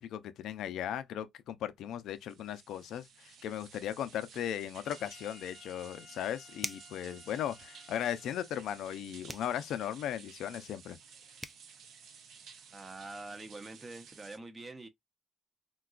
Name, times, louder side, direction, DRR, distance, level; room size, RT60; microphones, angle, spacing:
voice 1, 0.0-11.0, left 10 dB, 80° left, 0.4 m, -37 dB
sound 1, 2.1-14.4, right 6 dB, 75° right, 0.7 m, -55 dB
Wind instrument woodwind instrument, 4.8-8.8, left 4 dB, 40° left, 0.7 m, -58 dB
sound 2, 6.6-7.0 9.3-9.6 11.1-11.2 11.4-11.6, equal, 5° right, 0.4 m, -40 dB
voice 2, 12.7-14.9, right 2 dB, 25° right, 0.8 m, -45 dB
3.8 x 2.2 x 2.4 m
cardioid pair, 90°, 0 cm